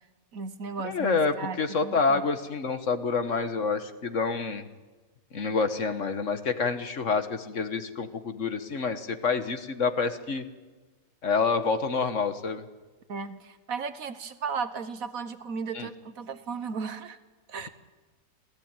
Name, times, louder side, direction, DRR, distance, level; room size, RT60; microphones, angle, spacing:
voice 1, 0.3-2.2 13.1-17.2 17.5-17.7, right 5 dB, 65° right, 12 dB, 1.5 m, -35 dB
voice 2, 0.8-4.6 5.3-10.4 11.2-12.6 15.7-15.9, left 4 dB, 55° left, 9 dB, 1.6 m, -27 dB
27.0 x 17.0 x 8.9 m, 1.3 s
omnidirectional pair, 1.6 m